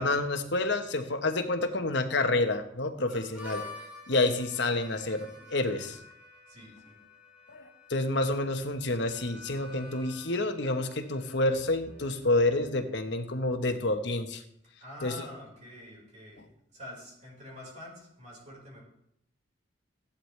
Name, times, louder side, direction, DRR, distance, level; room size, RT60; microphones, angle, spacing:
voice 1, 0.0-3.6 4.1-6.0 7.5-14.4 15.0-15.1, left 2 dB, 65° left, 7 dB, 1.1 m, -28 dB
Harmonica, 3.1-12.7, left 2 dB, 10° right, 3.6 m, -49 dB
voice 2, 6.5-7.0 14.8-18.8, left 1 dB, 40° right, -3 dB, 4.8 m, -47 dB
16.0 x 11.5 x 3.3 m, 0.75 s
head